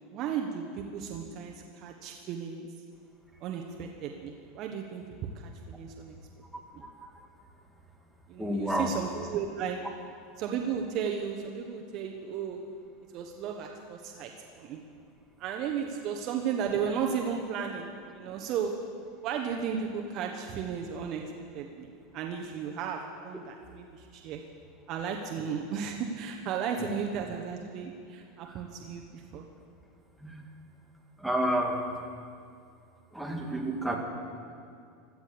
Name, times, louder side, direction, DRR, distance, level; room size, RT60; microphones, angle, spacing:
voice 1, 0.1-2.7 3.4-5.0 5.3-6.2 6.7-6.8 8.3-9.8 10.4-12.6 13.1-14.3 14.6-14.8 15.4-18.7 19.2-24.4 24.9-29.5, right 7 dB, 45° right, 2 dB, 1.2 m, -34 dB
voice 2, 6.8-7.1 8.4-8.9 26.8-26.9 28.5-28.6 30.2-30.4 31.2-31.8 33.1-34.0, right 1 dB, ahead, 1 dB, 2.2 m, -30 dB
16.5 x 13.0 x 6.9 m, 2.4 s
supercardioid pair, 140°, 0 cm